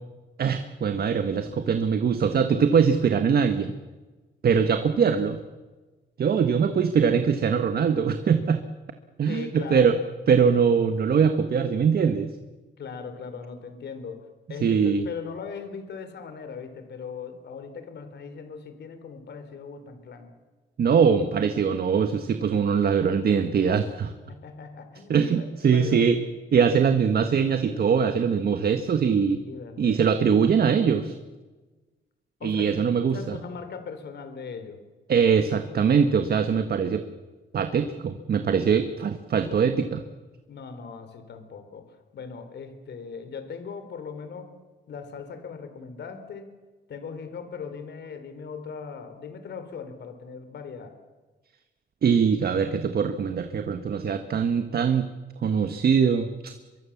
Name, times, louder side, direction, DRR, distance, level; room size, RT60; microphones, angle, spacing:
voice 1, 0.4-3.7 4.4-5.4 6.2-8.6 9.2-10.0 10.3-12.3 14.6-15.0 20.8-24.1 25.1-26.2 26.5-29.4 29.8-31.1 32.4-33.4 35.1-37.0 37.5-40.0 52.0-55.1 55.4-56.6, right 6 dB, 55° right, 8 dB, 1.6 m, -22 dB
voice 2, 9.3-10.0 12.8-20.3 24.3-26.0 29.3-30.0 32.4-32.8 33.1-34.8 40.5-44.5 44.9-46.5 46.9-50.9, left 5 dB, 65° left, 9 dB, 3.7 m, -39 dB
24.0 x 23.0 x 7.3 m, 1.3 s
cardioid pair, 100°, 19 cm